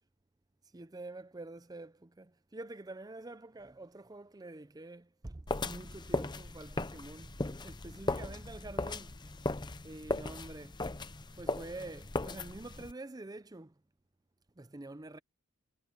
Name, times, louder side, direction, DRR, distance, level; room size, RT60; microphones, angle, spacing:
voice 1, 0.7-9.3 9.8-10.8 11.4-13.7 14.6-15.2, right 2 dB, 15° right, 0.5 m, -47 dB
sound 1, 5.5-12.9, left 2 dB, 20° left, 0.7 m, -37 dB
head